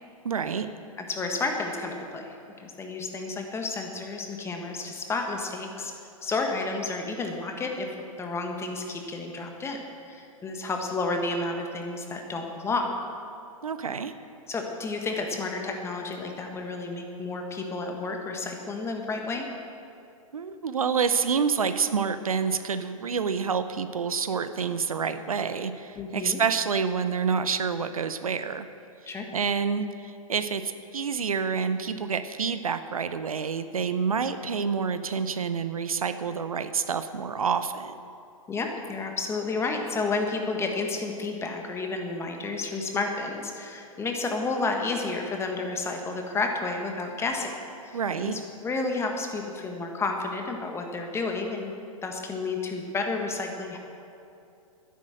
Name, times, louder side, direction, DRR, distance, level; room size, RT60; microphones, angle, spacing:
voice 1, 0.2-0.7 13.6-14.1 20.3-28.7 29.0-38.0 47.9-48.4, right 6 dB, 75° right, 11 dB, 0.7 m, -28 dB
voice 2, 1.0-2.2 2.6-5.9 6.2-7.9 8.2-12.9 14.5-19.5 21.3-21.4 21.6-21.7 25.9-26.4 29.1-29.3 38.5-47.6 47.8-51.7 52.0-53.8, left 3 dB, 15° left, 3 dB, 1.5 m, -31 dB
12.0 x 10.5 x 6.5 m, 2.7 s
figure-of-eight pair, 110°, 18 cm